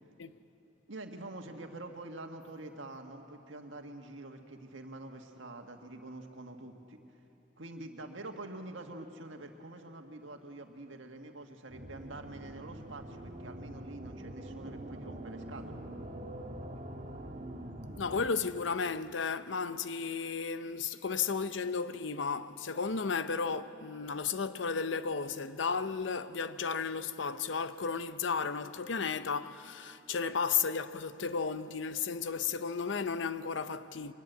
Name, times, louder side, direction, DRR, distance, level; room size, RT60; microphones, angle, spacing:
voice 1, 0.9-7.0 7.6-15.8, right 2 dB, 90° right, 1.7 m, -46 dB
sound 1, 11.7-18.3, right 1 dB, 40° right, 1.5 m, -44 dB
voice 2, 18.0-34.1, left 5 dB, 75° left, 0.7 m, -34 dB
23.0 x 20.0 x 8.1 m
head